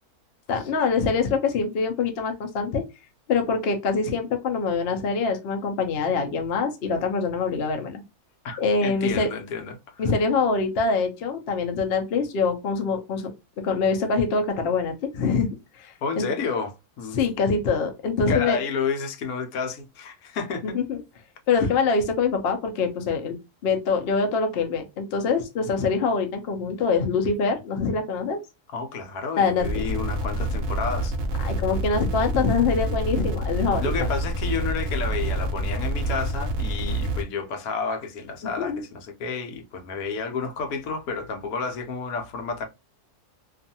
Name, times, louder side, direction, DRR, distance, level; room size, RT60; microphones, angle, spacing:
voice 1, 0.5-2.8 3.3-8.0 8.6-9.3 10.0-13.3 13.6-15.5 15.8-16.3 17.1-18.6 20.6-21.0 21.5-23.4 23.6-28.4 29.4-29.9 31.4-33.9 38.6-38.8, left 4 dB, 60° left, 0.6 m, -24 dB
voice 2, 8.4-10.0 16.0-17.2 18.3-20.7 21.6-21.7 28.7-31.1 33.8-42.7, left 5 dB, 80° left, 1.1 m, -31 dB
sound 1, 29.6-37.2, right 1 dB, 65° right, 0.9 m, -27 dB
2.6 x 2.3 x 2.6 m
omnidirectional pair, 1.6 m